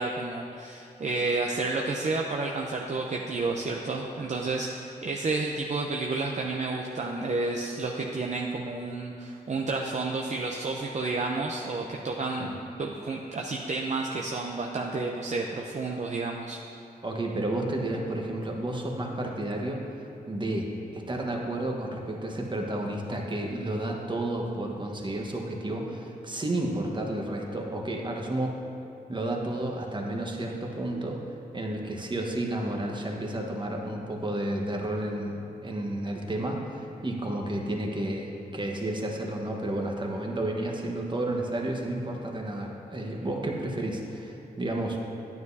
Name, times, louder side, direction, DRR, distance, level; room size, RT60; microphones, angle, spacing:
voice 1, 0.0-16.6, right 3 dB, 45° right, 0 dB, 0.6 m, -31 dB
voice 2, 17.0-28.5 29.1-31.2 31.5-45.0, right 1 dB, 30° right, 0 dB, 1.3 m, -31 dB
9.4 x 9.3 x 2.7 m, 2.8 s
cardioid pair, 60°, 16 cm